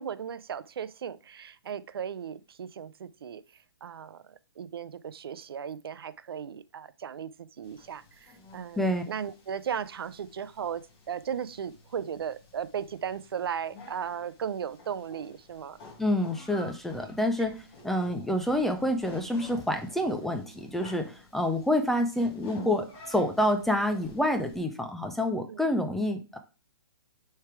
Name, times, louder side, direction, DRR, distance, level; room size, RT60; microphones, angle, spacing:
voice 1, 0.0-3.4 3.8-15.8 25.5-25.6, right 8 dB, 75° right, 0.5 m, -36 dB
sound 1, 7.6-24.6, left 2 dB, 30° left, 2.0 m, -50 dB
voice 2, 16.0-17.5 17.8-26.4, left 1 dB, ahead, 0.3 m, -28 dB
6.6 x 3.4 x 4.6 m
hypercardioid pair, 155°, 12 cm